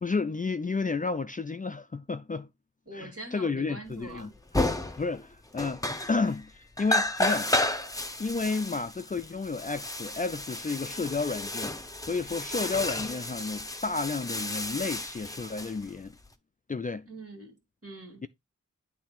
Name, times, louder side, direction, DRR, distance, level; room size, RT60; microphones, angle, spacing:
voice 1, 0.0-2.5 2.9-4.3 5.0-6.5 6.8-7.5 8.2-11.7 12.0-16.1 16.7-17.1, left 4 dB, 25° left, 0.4 m, -31 dB
voice 2, 2.9-4.3 17.1-18.2, right 2 dB, 50° right, 2.6 m, -44 dB
sound 1, 4.1-4.2 4.5-5.2 5.5-6.5 6.8-16.3, left 1 dB, 10° left, 0.8 m, -32 dB
8.5 x 3.4 x 4.4 m
wide cardioid pair, 50°, 30 cm